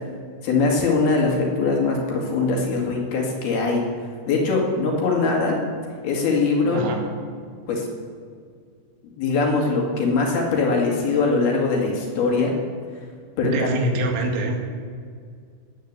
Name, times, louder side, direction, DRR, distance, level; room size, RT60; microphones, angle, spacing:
voice 1, 0.4-3.8 4.3-5.6 6.0-6.8 7.7-7.9 9.2-12.5 13.4-13.7, left 4 dB, 60° left, 0 dB, 3.9 m, -21 dB
voice 2, 6.7-7.1 13.4-14.6, right 2 dB, 75° right, 2 dB, 4.3 m, -25 dB
17.5 x 9.3 x 8.3 m, 2.1 s
omnidirectional pair, 5.5 m